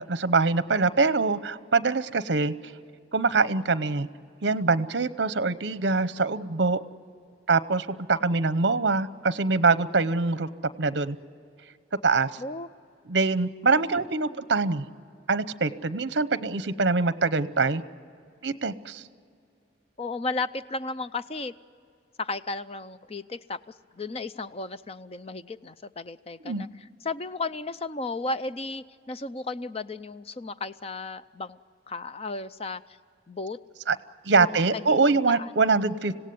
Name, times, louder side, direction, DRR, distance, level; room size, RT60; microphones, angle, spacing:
voice 1, 0.0-2.5 3.1-4.1 4.4-6.8 7.5-10.5 10.8-11.2 12.0-12.4 13.1-14.9 15.3-17.8 18.4-19.0 26.4-26.7 33.9-34.0 34.2-36.2, right 4 dB, 65° right, 14 dB, 0.8 m, -24 dB
voice 2, 20.0-21.5 22.2-23.6 23.9-26.7 27.0-31.6 31.9-32.8 33.3-33.6 34.4-35.5, left 3 dB, 30° left, 13 dB, 0.5 m, -34 dB
26.0 x 17.0 x 9.4 m, 2.4 s
head